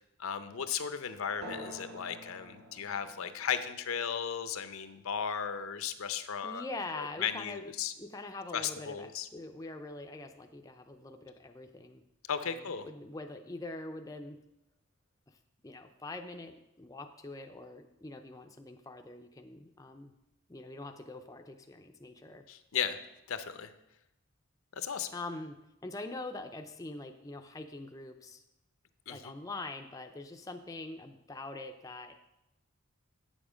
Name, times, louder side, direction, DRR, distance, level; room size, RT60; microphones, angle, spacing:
voice 1, 0.2-6.6 7.0-7.9 8.5-9.3 12.3-12.8 22.5-23.0 23.3-23.7 24.8-25.1 29.1-29.3, left 7 dB, 75° left, 10 dB, 0.6 m, -35 dB
sound 1, 1.4-6.4, equal, 90° right, 2.3 m, -50 dB
voice 2, 6.4-7.6 8.0-12.0 12.4-14.4 15.3-15.4 15.6-20.1 20.5-22.4 25.1-25.6 25.8-28.4 29.1-32.1, left 2 dB, 15° left, 5 dB, 0.5 m, -44 dB
8.8 x 7.2 x 5.0 m, 0.89 s
head